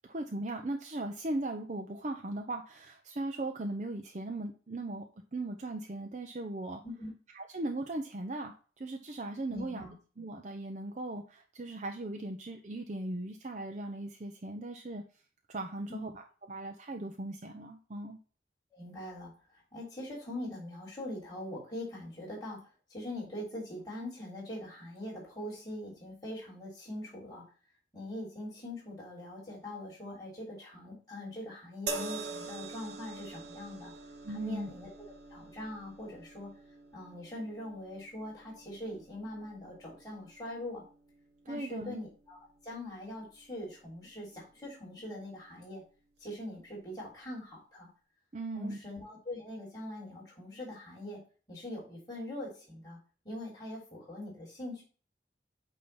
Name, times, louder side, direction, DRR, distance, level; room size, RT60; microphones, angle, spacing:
voice 1, 0.0-5.0 5.3-6.8 7.3-9.9 10.2-15.0 15.5-16.2 16.5-18.2 34.2-34.7 41.5-42.0 48.3-48.8, right 2 dB, 40° right, 3 dB, 0.6 m, -38 dB
voice 2, 9.5-9.9 15.9-16.0 18.7-27.4 27.9-33.9 34.3-34.9 35.3-36.5 36.9-40.8 41.5-45.8 46.2-47.9 48.5-51.2 51.5-53.0 53.3-54.8, left 1 dB, 20° left, -6 dB, 3.4 m, -42 dB
sound 1, 31.9-45.2 46.1-46.3, right 3 dB, 65° right, 1.0 m, -46 dB
8.5 x 2.9 x 5.6 m, 0.38 s
head